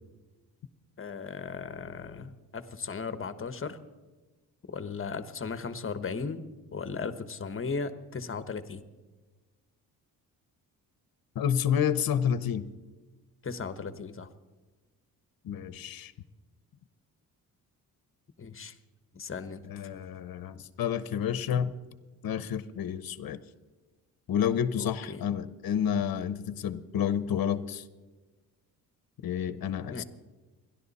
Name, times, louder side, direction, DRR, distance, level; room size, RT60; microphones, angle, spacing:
voice 1, 1.0-3.8 4.7-6.4 6.7-8.8 13.4-14.3 18.4-18.8 19.1-19.6 24.8-25.2 29.9-30.0, left 5 dB, 35° left, 11 dB, 1.2 m, -36 dB
voice 2, 11.3-12.7 15.4-16.1 19.7-21.7 22.2-23.4 24.3-27.8 29.2-30.0, left 8 dB, 65° left, 14 dB, 0.9 m, -29 dB
29.5 x 11.5 x 4.2 m, 1.3 s
cardioid pair, 90°, 37 cm